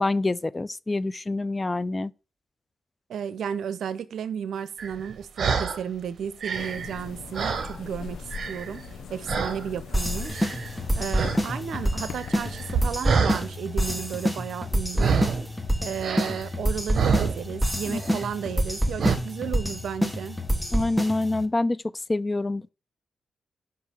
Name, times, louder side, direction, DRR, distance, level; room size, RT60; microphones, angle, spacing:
voice 1, 0.0-2.1 17.9-18.0 20.7-21.8 22.1-22.7, left 2 dB, 25° left, 0.4 m, -26 dB
voice 2, 3.1-15.2 15.8-20.4, right 8 dB, 80° right, 0.7 m, -33 dB
sound 1, 4.8-5.8 6.3-8.0 8.3-8.9 9.3-9.7 10.2-10.8 11.1-11.4 11.7-13.5 14.9-15.5 16.0-17.7 18.0-18.3 19.0-19.2, right 6 dB, 60° right, 1.1 m, -27 dB
sound 2, 6.5-12.9, left 6 dB, 75° left, 0.8 m, -40 dB
sound 3, 9.9-21.4, equal, 5° left, 1.1 m, -27 dB
5.6 x 5.5 x 6.2 m
cardioid pair, 65°, 0 cm